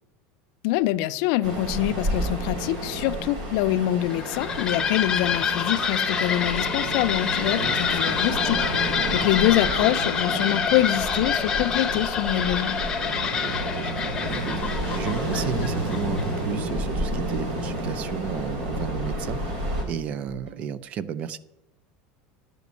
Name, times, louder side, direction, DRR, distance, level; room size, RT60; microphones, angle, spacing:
voice 1, 0.6-12.8, left 14 dB, 55° left, 0.5 m, -25 dB
Ocean, 1.4-19.8, right 1 dB, 70° right, 3.5 m, -30 dB
sound 1, 4.0-16.6, left 6 dB, 15° left, 0.8 m, -27 dB
voice 2, 7.4-8.2 9.2-9.3 13.3-14.6 14.9-19.4 19.8-21.4, right 8 dB, 30° right, 0.4 m, -33 dB
sound 2, 11.1-20.7, right 1 dB, 85° right, 1.3 m, -43 dB
11.0 x 5.2 x 8.2 m
cardioid pair, 170°, 4 cm